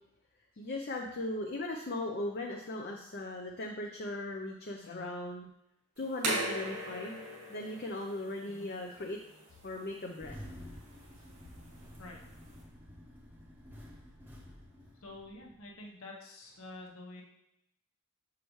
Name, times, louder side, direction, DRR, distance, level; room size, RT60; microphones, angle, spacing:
voice 1, 0.6-5.5 6.0-7.2 7.5-9.2 9.6-10.4, left 2 dB, 45° left, 1 dB, 0.5 m, -38 dB
sound 1, 6.0-12.6, right 1 dB, 85° right, 1.8 m, -40 dB
Engine starting, 10.2-15.7, equal, 10° right, 0.8 m, -50 dB
voice 2, 15.0-17.2, left 2 dB, 70° left, -1 dB, 1.1 m, -48 dB
6.5 x 4.8 x 3.1 m, 0.82 s
head